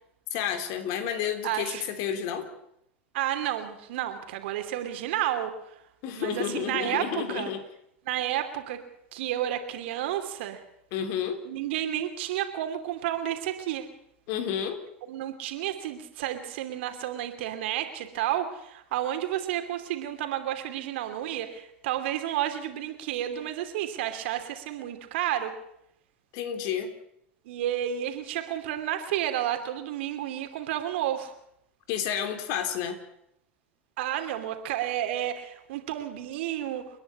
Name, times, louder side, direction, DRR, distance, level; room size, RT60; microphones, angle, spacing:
voice 1, 0.3-2.5 6.0-7.6 10.9-11.4 14.3-14.8 26.3-26.9 31.9-33.0, left 9 dB, 60° left, 7 dB, 3.4 m, -30 dB
voice 2, 1.4-1.9 3.1-5.5 6.2-7.5 8.0-8.8 9.1-10.6 11.4-13.9 15.1-25.5 27.4-31.3 34.0-36.8, right 12 dB, 70° right, 7 dB, 2.8 m, -31 dB
30.0 x 10.5 x 8.4 m, 0.76 s
hypercardioid pair, 85°, 6 cm